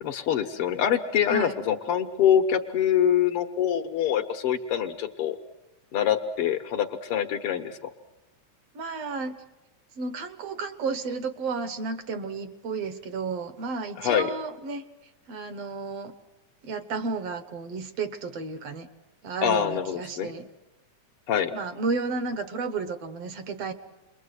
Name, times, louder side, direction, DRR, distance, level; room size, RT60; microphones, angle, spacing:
voice 1, 0.0-5.4 5.9-7.8 14.0-14.3 19.4-20.3 21.3-21.5, left 9 dB, 60° left, 7 dB, 1.7 m, -25 dB
voice 2, 8.7-9.4 10.0-14.8 15.3-16.1 16.6-18.9 19.2-20.5 21.5-23.7, right 4 dB, 60° right, 11 dB, 2.2 m, -32 dB
28.5 x 22.5 x 8.1 m, 1.0 s
omnidirectional pair, 3.4 m